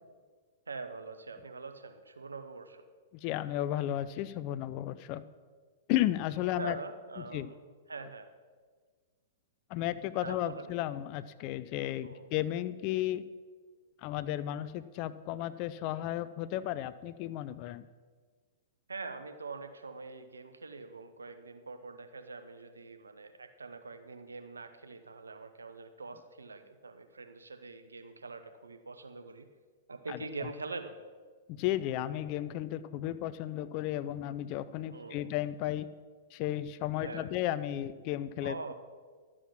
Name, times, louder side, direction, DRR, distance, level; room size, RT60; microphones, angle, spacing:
voice 1, 0.7-2.8 6.6-7.6 7.9-8.3 10.1-10.7 12.0-12.3 18.9-29.5 29.9-31.0 34.9-35.3 37.0-37.3 38.4-38.7, right 4 dB, 85° right, 8 dB, 0.9 m, -44 dB
voice 2, 3.2-5.2 5.9-6.8 7.3-7.5 9.7-13.2 14.0-17.8 30.1-30.2 31.5-35.9 36.3-38.5, left 13 dB, 40° left, 15 dB, 0.5 m, -34 dB
12.0 x 7.5 x 5.9 m, 1.5 s
figure-of-eight pair, 110°, 0 cm